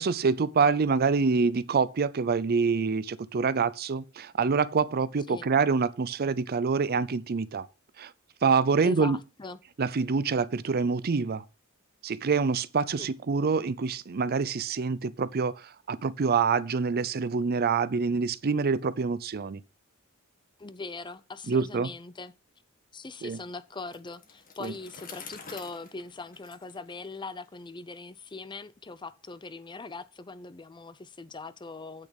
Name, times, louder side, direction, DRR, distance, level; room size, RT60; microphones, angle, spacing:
voice 1, 0.0-7.7 8.0-8.1 8.4-9.2 9.8-11.4 12.0-19.6 21.5-21.9 23.2-23.4 24.6-24.7, right 5 dB, 45° right, 0.5 m, -26 dB
voice 2, 8.8-9.6 13.0-13.1 20.6-22.3 22.9-32.1, left 3 dB, 20° left, 0.6 m, -41 dB
Bicycle, 23.8-27.6, left 5 dB, 40° left, 1.7 m, -48 dB
8.5 x 6.8 x 5.1 m
head